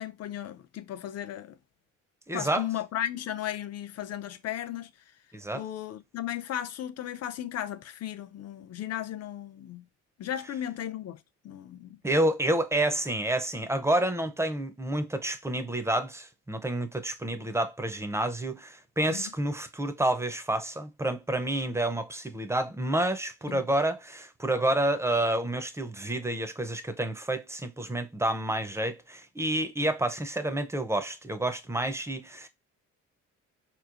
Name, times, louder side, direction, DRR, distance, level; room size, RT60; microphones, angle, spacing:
voice 1, 0.0-1.6 2.3-4.9 5.5-9.9 10.2-11.2 11.4-12.0 19.1-19.3 23.5-23.6, left 11 dB, 55° left, 0.6 m, -35 dB
voice 2, 2.3-2.7 5.3-5.6 12.0-32.5, right 1 dB, 10° right, 0.5 m, -29 dB
4.1 x 3.0 x 2.5 m
cardioid pair, 90°, 30 cm